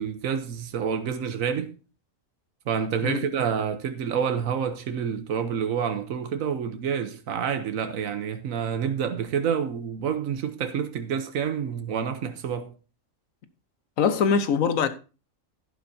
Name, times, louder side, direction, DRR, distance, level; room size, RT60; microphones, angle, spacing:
voice 1, 0.0-1.7 2.7-12.7, right 7 dB, 90° right, 1.3 m, -28 dB
voice 2, 14.0-14.9, left 6 dB, 85° left, 1.4 m, -22 dB
11.5 x 11.0 x 2.7 m
omnidirectional pair, 1.4 m